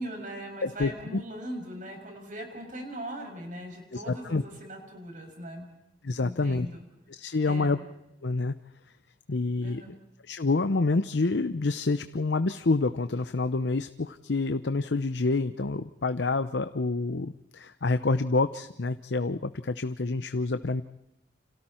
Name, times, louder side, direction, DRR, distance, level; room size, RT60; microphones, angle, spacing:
voice 1, 0.0-5.7 6.2-6.8 7.4-7.8 9.6-10.0, right 1 dB, 50° right, 3 dB, 6.8 m, -40 dB
voice 2, 3.9-4.4 6.0-6.7 7.1-7.8 8.2-8.5 9.3-9.8 10.3-20.8, left 3 dB, 80° left, 11 dB, 0.8 m, -27 dB
29.5 x 27.0 x 4.4 m, 0.89 s
head